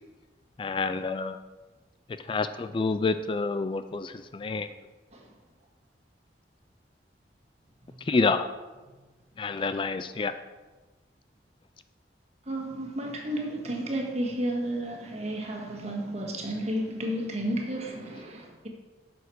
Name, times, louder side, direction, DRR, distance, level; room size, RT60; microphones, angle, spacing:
voice 1, 0.6-1.4 2.3-4.7 8.1-8.5 9.4-10.3, left 4 dB, 30° left, 10 dB, 0.3 m, -28 dB
voice 2, 12.5-18.7, right 1 dB, 40° right, 0 dB, 1.7 m, -32 dB
11.0 x 7.1 x 4.6 m, 1.3 s
head